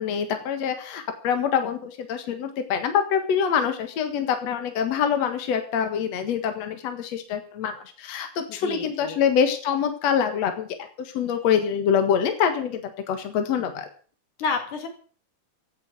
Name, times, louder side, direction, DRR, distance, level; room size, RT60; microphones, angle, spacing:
voice 1, 0.0-10.7 11.0-13.9, left 7 dB, 60° left, 7 dB, 2.8 m, -25 dB
voice 2, 8.6-9.2 14.4-14.9, left 5 dB, 90° left, 5 dB, 4.1 m, -29 dB
16.0 x 8.0 x 7.9 m, 0.41 s
omnidirectional pair, 3.4 m